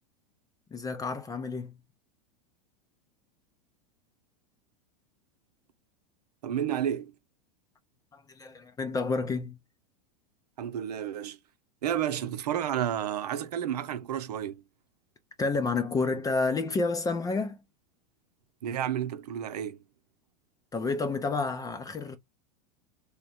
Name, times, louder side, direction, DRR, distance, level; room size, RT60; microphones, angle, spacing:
voice 1, 0.7-1.7 8.1-9.6 15.4-17.6 20.7-22.2, left 3 dB, 20° left, 0.6 m, -30 dB
voice 2, 6.4-7.1 10.6-11.4 11.8-14.6 18.6-19.8, right 10 dB, 80° right, 0.8 m, -31 dB
3.5 x 2.1 x 4.2 m
hypercardioid pair, 115°, 20 cm